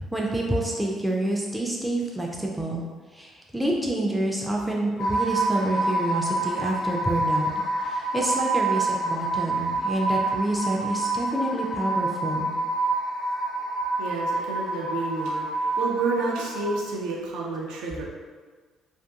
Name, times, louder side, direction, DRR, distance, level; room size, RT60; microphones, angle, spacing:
voice 1, 0.0-2.8 3.1-7.5 7.8-12.5, right 1 dB, 5° right, -2 dB, 0.4 m, -28 dB
sound 1, 5.0-16.8, right 2 dB, 55° left, 0.5 m, -27 dB
voice 2, 14.0-18.0, right 3 dB, 65° right, -3 dB, 0.5 m, -30 dB
2.5 x 2.4 x 2.3 m, 1.5 s
figure-of-eight pair, 45°, 0 cm